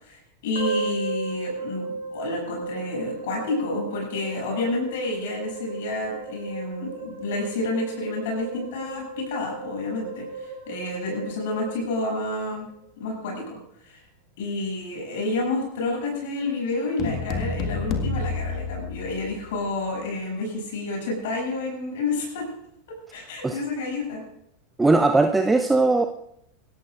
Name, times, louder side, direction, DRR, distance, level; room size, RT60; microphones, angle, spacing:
voice 1, 0.0-12.7 13.0-13.6 13.8-14.0 14.4-22.5 23.1-24.2, left 2 dB, 60° left, -1 dB, 7.7 m, -29 dB
sound 1, 0.5-12.8, right 3 dB, 70° right, 5.7 m, -35 dB
sound 2, 17.0-19.5, left 4 dB, 40° left, 1.8 m, -29 dB
voice 2, 24.8-26.1, right 3 dB, 10° right, 6 dB, 0.8 m, -19 dB
27.5 x 14.5 x 2.5 m, 0.76 s
figure-of-eight pair, 85°, 0 cm